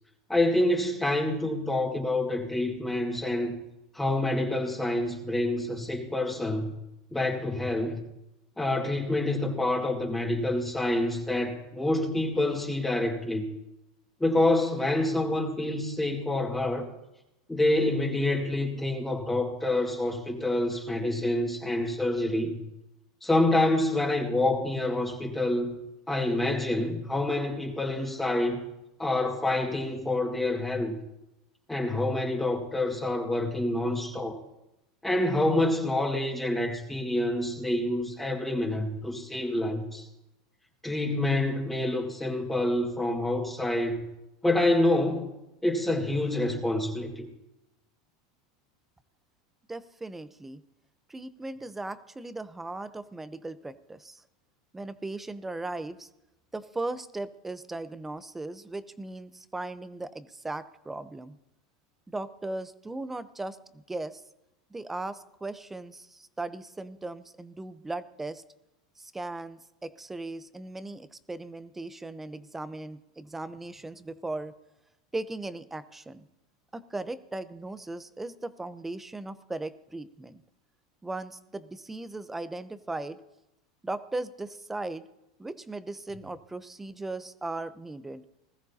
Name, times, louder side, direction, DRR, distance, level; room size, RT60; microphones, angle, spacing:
voice 1, 0.3-3.5 3.9-6.7 7.1-8.0 8.6-13.4 14.2-16.9 17.5-22.6 23.2-25.7 26.1-28.6 29.0-31.0 31.7-34.4 35.0-40.1 40.8-44.0 44.4-45.3 45.6-47.3, left 1 dB, 10° left, 0 dB, 2.0 m, -27 dB
voice 2, 49.7-50.6 51.1-54.2 54.7-56.1 56.5-61.4 62.1-64.2 64.7-68.4 69.0-74.5 75.1-76.3 76.7-80.4 81.0-83.2 83.8-85.1 85.4-88.2, right 2 dB, 10° right, 13 dB, 0.8 m, -37 dB
20.0 x 14.0 x 2.9 m, 0.90 s
supercardioid pair, 105°, 2 cm